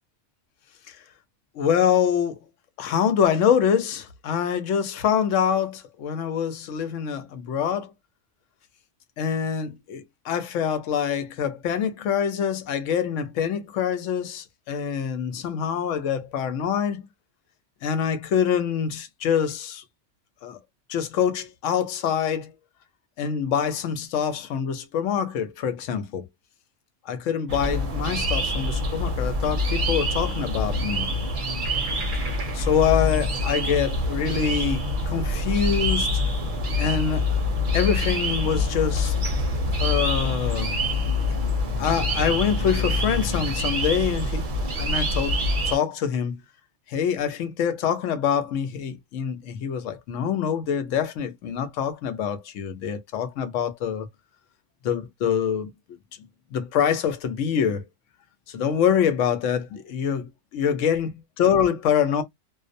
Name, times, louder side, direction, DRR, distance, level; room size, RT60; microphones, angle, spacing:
voice 1, 1.6-2.4 2.8-7.9 9.2-17.0 17.8-19.8 20.4-20.6 20.9-22.5 23.2-26.3 27.1-31.1 32.5-36.2 36.8-37.3 37.7-39.1 39.8-40.7 41.8-44.5 44.8-45.4 45.7-46.4 46.9-54.1 54.8-55.7 56.5-57.9 58.5-61.1 61.4-62.2, left 8 dB, 90° left, 1.0 m, -25 dB
sound 1, 27.5-45.8, left 1 dB, 50° right, 0.8 m, -25 dB
2.4 x 2.0 x 2.5 m
omnidirectional pair, 1.3 m